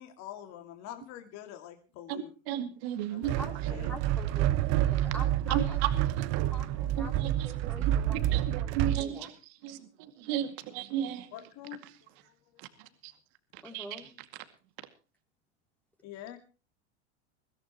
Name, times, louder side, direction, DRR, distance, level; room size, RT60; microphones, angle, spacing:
voice 1, 0.0-2.3 3.1-3.9 4.3-4.4 11.3-12.8 16.0-16.4, left 12 dB, 50° left, 2.4 m, -46 dB
voice 2, 2.1-3.4 5.5-5.9 6.9-7.5 7.9-9.3 9.6-11.3 13.0-13.1 13.5-14.0, right 11 dB, 65° right, 2.3 m, -34 dB
sound 1, 3.2-9.0, right 13 dB, 50° right, 0.9 m, -28 dB
voice 3, 3.4-5.8 6.5-9.3 13.6-14.1, equal, 5° left, 3.1 m, -45 dB
22.0 x 16.0 x 3.0 m
supercardioid pair, 115°, 34 cm